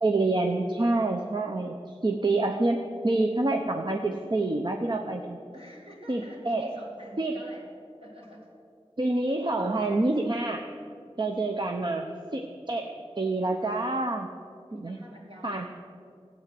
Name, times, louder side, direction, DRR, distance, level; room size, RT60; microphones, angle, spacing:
voice 1, 0.0-2.8 3.0-5.4 6.1-6.8 7.2-7.4 9.0-10.7 11.2-12.1 12.3-14.3 14.7-15.0 15.4-15.7, right 2 dB, 45° right, 3 dB, 0.8 m, -27 dB
voice 2, 5.5-7.6 8.0-8.5 14.7-15.7, equal, 65° right, -2 dB, 3.2 m, -47 dB
14.0 x 9.1 x 7.6 m, 2.3 s
wide cardioid pair, 60°, 11 cm